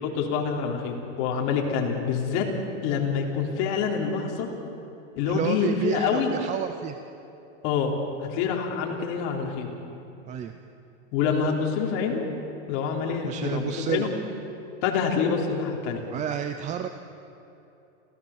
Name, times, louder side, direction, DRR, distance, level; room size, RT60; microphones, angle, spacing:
voice 1, 0.0-2.5 2.8-4.5 5.2-6.3 7.6-7.9 8.2-9.7 11.1-12.2 12.7-14.1 14.8-16.0, left 6 dB, 45° left, 0 dB, 3.5 m, -26 dB
voice 2, 5.2-7.0 10.3-10.5 13.2-14.1 16.1-16.9, right 9 dB, 20° right, 8 dB, 0.5 m, -30 dB
27.0 x 16.5 x 7.2 m, 2.9 s
supercardioid pair, 150°, 37 cm